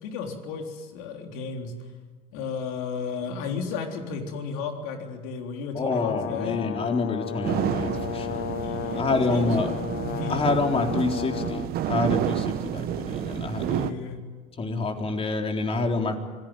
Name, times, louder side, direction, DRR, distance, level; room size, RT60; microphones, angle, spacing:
voice 1, 0.0-1.7 2.3-6.6 8.6-10.6 13.6-14.2, left 5 dB, 75° left, 3 dB, 3.7 m, -34 dB
voice 2, 5.7-8.5 9.0-9.7 10.3-13.9 14.6-16.2, left 3 dB, 30° left, 3 dB, 4.1 m, -27 dB
Brass instrument, 5.9-11.7, left 10 dB, 50° left, 1.5 m, -34 dB
sound 1, 7.4-13.9, right 11 dB, 55° right, 1.2 m, -30 dB
26.0 x 17.5 x 9.4 m, 1.5 s
hypercardioid pair, 75°, 19 cm